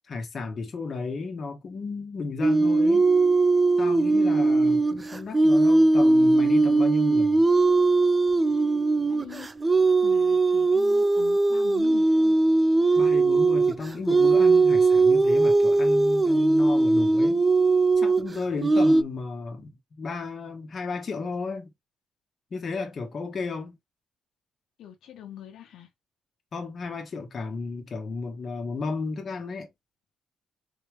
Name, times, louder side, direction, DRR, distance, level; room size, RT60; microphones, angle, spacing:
voice 1, 0.1-3.1 3.8-7.4 13.0-17.4 18.0-21.7 22.5-23.8 26.5-29.7, left 4 dB, 40° left, 1.4 m, -33 dB
sound 1, 2.4-19.0, right 3 dB, 20° right, 0.4 m, -20 dB
voice 2, 9.1-9.5 10.0-12.4 24.8-25.9, left 12 dB, 80° left, 1.2 m, -43 dB
4.3 x 3.3 x 3.2 m
cardioid pair, 130°, 0 cm